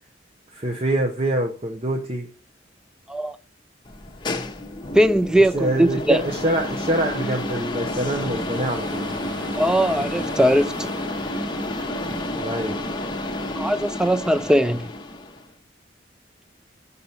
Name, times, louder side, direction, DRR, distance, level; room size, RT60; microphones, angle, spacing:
voice 1, 0.5-2.3 5.5-9.1 12.4-12.8, right 1 dB, 35° right, 0.8 m, -25 dB
sound 1, 3.9-15.5, left 2 dB, 25° left, 0.9 m, -30 dB
voice 2, 4.9-6.2 9.6-10.9 13.5-14.9, right 1 dB, 5° right, 0.3 m, -20 dB
sound 2, 6.1-13.5, right 1 dB, 90° right, 1.3 m, -39 dB
5.9 x 5.5 x 6.8 m
head